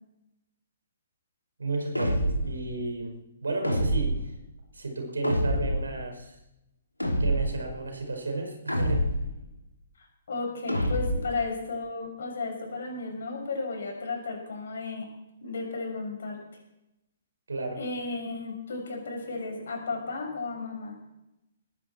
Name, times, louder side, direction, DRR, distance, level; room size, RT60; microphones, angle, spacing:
voice 1, 1.6-3.1 3.4-4.2 4.7-6.4 7.2-9.0 17.5-17.8, right 3 dB, 70° right, 4 dB, 5.3 m, -32 dB
sound 1, 1.9-2.6 3.6-4.3 5.2-5.9 7.0-7.6 8.7-9.4 10.7-11.3, equal, 85° left, 3.3 m, -27 dB
voice 2, 10.0-15.1 15.4-16.4 17.7-21.0, left 3 dB, 60° left, 1 dB, 6.7 m, -34 dB
20.0 x 16.0 x 4.5 m, 0.89 s
figure-of-eight pair, 120°, 0 cm